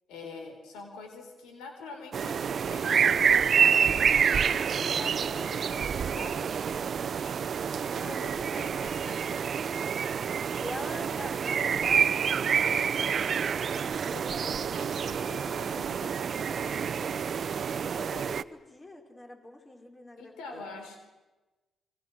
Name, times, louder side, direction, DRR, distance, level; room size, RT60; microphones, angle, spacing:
voice 1, 0.1-6.7 7.9-9.4 11.0-11.1 14.1-17.4 20.2-21.0, left 3 dB, 90° left, 5 dB, 4.2 m, -45 dB
sound 1, 2.1-18.4, right 7 dB, 60° right, 0.8 m, -27 dB
voice 2, 7.9-8.7 10.6-14.7 17.1-17.2 17.7-20.7, left 1 dB, 25° left, 3 dB, 5.1 m, -45 dB
29.0 x 24.0 x 6.4 m, 1.1 s
supercardioid pair, 60°, 0 cm